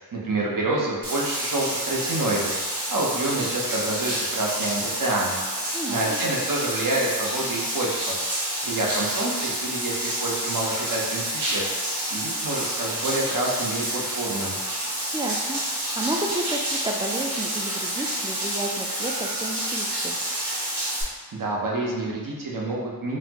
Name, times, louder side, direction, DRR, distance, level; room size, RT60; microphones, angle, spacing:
voice 1, 0.0-2.6 2.9-5.4 5.9-8.2 8.6-14.6 21.1-23.2, right 2 dB, 55° right, -3 dB, 0.7 m, -28 dB
Bathtub (filling or washing), 1.0-21.0, right 1 dB, 85° right, 0.9 m, -29 dB
voice 2, 5.7-6.2 15.1-15.6 16.0-20.1, right 2 dB, 15° right, 1 dB, 0.3 m, -31 dB
3.9 x 2.0 x 2.8 m, 1.5 s
wide cardioid pair, 65°, 40 cm